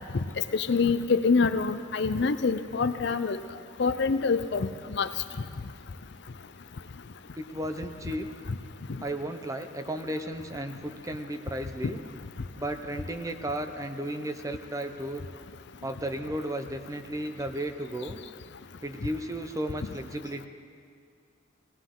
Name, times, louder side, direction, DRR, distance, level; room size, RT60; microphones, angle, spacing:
voice 1, 0.5-3.4 3.8-5.1, left 4 dB, 55° left, 10 dB, 0.5 m, -25 dB
voice 2, 7.4-8.3 9.0-12.0 12.6-15.2 15.8-18.2 18.8-20.5, right 1 dB, 15° right, 7 dB, 0.6 m, -34 dB
20.0 x 17.0 x 3.8 m, 2.3 s
head